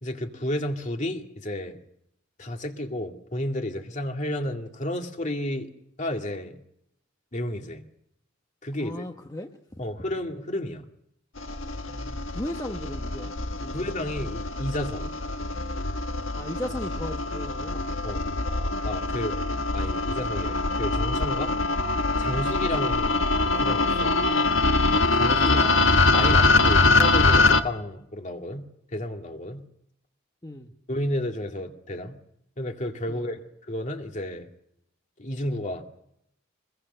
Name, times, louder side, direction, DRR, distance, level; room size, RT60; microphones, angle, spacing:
voice 1, 0.0-1.8 2.4-5.7 6.0-6.6 7.3-7.8 8.6-9.0 9.8-10.9 13.7-15.1 18.0-18.2 18.8-19.4 19.7-21.6 22.2-23.2 23.6-24.2 25.1-29.7 30.9-32.2 32.6-34.5 35.2-35.8, left 1 dB, 40° left, 4 dB, 2.2 m, -32 dB
voice 2, 8.8-9.5 11.9-13.3 13.6-13.9 16.4-17.9 25.3-25.7 30.4-30.7 33.1-33.3, left 1 dB, 20° left, 3 dB, 1.2 m, -36 dB
sound 1, 11.4-27.6, left 3 dB, 85° left, 1.4 m, -23 dB
24.0 x 21.5 x 6.8 m, 0.76 s
head